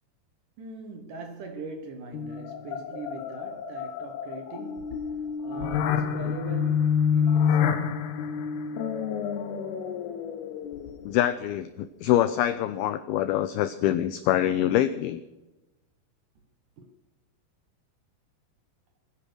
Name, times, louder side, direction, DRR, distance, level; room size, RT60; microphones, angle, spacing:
voice 1, 0.6-5.0 5.4-7.9 16.8-16.9, right 3 dB, 65° right, 2.2 m, -41 dB
sound 1, 2.1-11.2, left 7 dB, 70° left, 2.9 m, -28 dB
voice 2, 11.1-15.2, left 12 dB, 90° left, 2.2 m, -25 dB
21.0 x 10.0 x 6.3 m
omnidirectional pair, 5.3 m